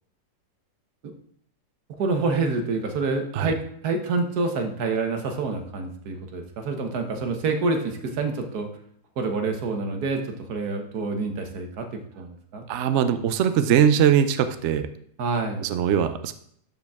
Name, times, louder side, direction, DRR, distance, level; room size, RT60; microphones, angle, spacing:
voice 1, 1.9-8.7 9.2-12.7 15.2-15.6, right 3 dB, 60° right, 5 dB, 1.5 m, -27 dB
voice 2, 12.7-14.9 15.6-16.3, right 8 dB, 85° right, 10 dB, 0.6 m, -21 dB
12.5 x 5.2 x 3.5 m, 0.66 s
omnidirectional pair, 2.0 m